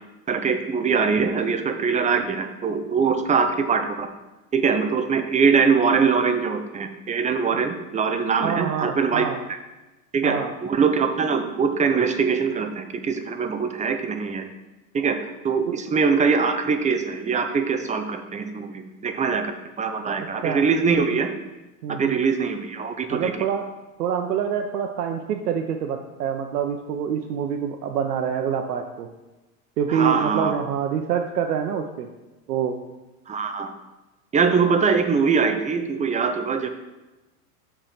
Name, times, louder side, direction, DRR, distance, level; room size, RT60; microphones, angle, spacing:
voice 1, 0.3-4.1 4.5-9.6 10.1-14.4 14.9-15.2 15.4-19.5 19.8-21.3 21.9-23.5 29.9-30.5 33.3-33.7 34.3-36.7, right 5 dB, 15° right, 7 dB, 0.5 m, -22 dB
voice 2, 8.4-9.4 10.2-10.5 15.7-15.8 20.4-20.6 21.8-22.2 23.1-23.6 24.0-29.1 29.8-32.1 32.5-32.8, right 7 dB, 85° right, 5 dB, 0.8 m, -26 dB
6.7 x 4.5 x 5.7 m, 1.1 s
hypercardioid pair, 105°, 46 cm